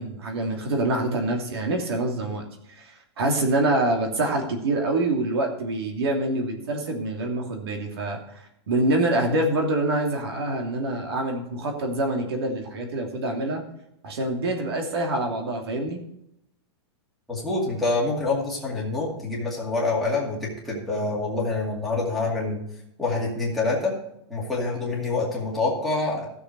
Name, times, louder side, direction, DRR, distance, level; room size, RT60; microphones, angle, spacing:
voice 1, 0.0-13.6 14.0-16.0, right 2 dB, 60° right, 2 dB, 2.7 m, -26 dB
voice 2, 17.3-22.6 23.0-23.9 24.3-26.3, left 3 dB, ahead, -6 dB, 2.3 m, -26 dB
14.5 x 6.9 x 4.7 m, 0.78 s
supercardioid pair, 175°, 15 cm